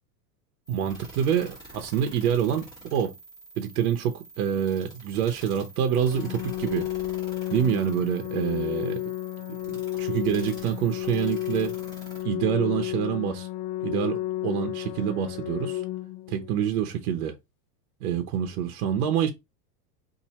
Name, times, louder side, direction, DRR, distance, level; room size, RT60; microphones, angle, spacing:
sound 1, 0.7-12.2, right 2 dB, 10° left, 1.0 m, -47 dB
voice 1, 0.7-2.7 2.9-3.1 3.6-6.9 7.5-9.0 9.7-11.7 12.2-13.5 13.8-15.8 16.3-17.3 18.0-19.3, right 9 dB, 60° right, 0.7 m, -26 dB
Organ, 5.9-16.9, left 15 dB, 90° left, 0.6 m, -32 dB
2.8 x 2.6 x 4.1 m
supercardioid pair, 170°, 49 cm